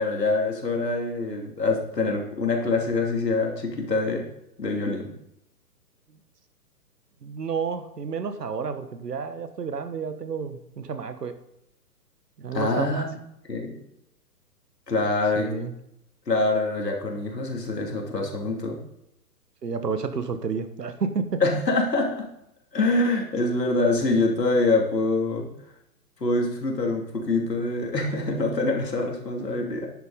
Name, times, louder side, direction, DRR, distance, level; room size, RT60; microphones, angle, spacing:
voice 1, 0.0-4.2 4.6-5.1 12.5-13.2 13.5-13.7 14.9-15.5 16.3-18.8 21.4-22.3 22.7-25.5 26.2-29.9, left 2 dB, 80° left, 0 dB, 2.8 m, -25 dB
voice 2, 7.2-11.4 12.4-13.1 15.3-15.7 19.6-21.4, right 5 dB, 75° right, 9 dB, 1.4 m, -30 dB
10.5 x 8.3 x 4.0 m, 0.81 s
figure-of-eight pair, 125°, 49 cm